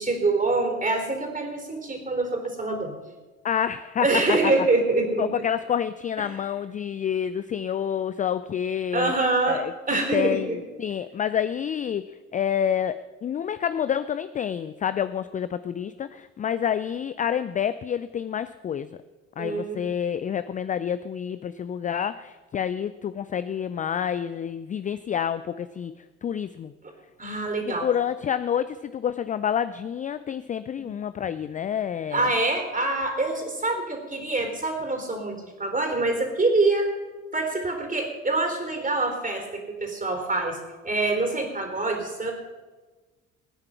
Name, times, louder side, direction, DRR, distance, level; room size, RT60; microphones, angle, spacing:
voice 1, 0.0-2.9 4.0-5.3 8.9-9.6 9.9-10.6 19.4-19.9 26.8-26.9 27.2-27.9 32.1-36.9 37.3-40.6 40.8-42.3, right 2 dB, 20° right, 4 dB, 4.0 m, -25 dB
voice 2, 3.4-4.5 5.2-9.1 9.5-9.7 10.1-12.1 12.3-18.9 19.4-25.9 26.2-26.7 27.7-32.3, left 8 dB, 20° left, 13 dB, 0.4 m, -28 dB
19.0 x 9.7 x 5.7 m, 1.2 s
figure-of-eight pair, 55°, 40 cm